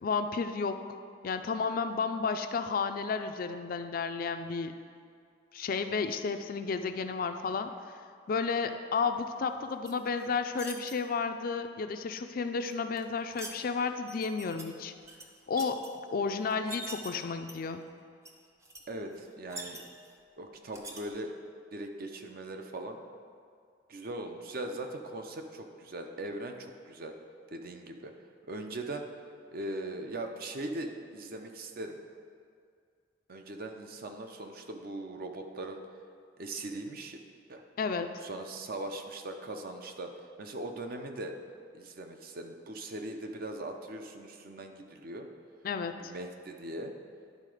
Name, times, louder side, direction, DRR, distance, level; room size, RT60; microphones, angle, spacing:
voice 1, 0.0-4.7 5.5-7.7 8.3-14.9 15.5-17.8 37.8-38.1 45.6-46.1, left 5 dB, 50° left, 8 dB, 0.4 m, -32 dB
sound 1, 9.8-10.9 12.7-13.6 14.1-14.6 15.0-15.9 16.4-17.1 17.5-17.9 18.2-18.3 18.6-18.8 19.1-20.1 20.7-21.0, right 2 dB, 15° right, 0.7 m, -44 dB
voice 2, 18.9-19.8 20.4-21.3 21.7-23.0 23.9-27.2 27.5-28.1 28.5-29.1 29.5-32.0 33.3-35.8 36.4-37.2 37.5-37.6 38.2-40.1 40.4-41.4 41.7-45.3 45.9-46.9, right 2 dB, 55° right, 4 dB, 0.6 m, -40 dB
10.5 x 3.8 x 4.9 m, 2.2 s
head